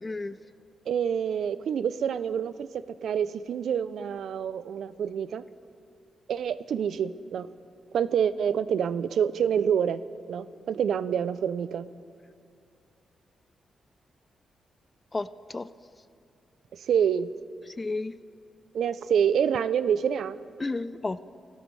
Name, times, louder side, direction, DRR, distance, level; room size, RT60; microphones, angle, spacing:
voice 1, 0.0-0.4 15.1-15.7 17.7-18.2 20.6-21.2, left 3 dB, 25° left, 15 dB, 0.4 m, -32 dB
voice 2, 0.9-2.7 3.0-5.4 6.3-7.5 7.9-10.0 10.3-11.9 16.9-17.3 18.7-20.4, right 8 dB, 75° right, 15 dB, 0.4 m, -27 dB
16.5 x 12.5 x 3.2 m, 2.6 s
cardioid pair, 75°, 0 cm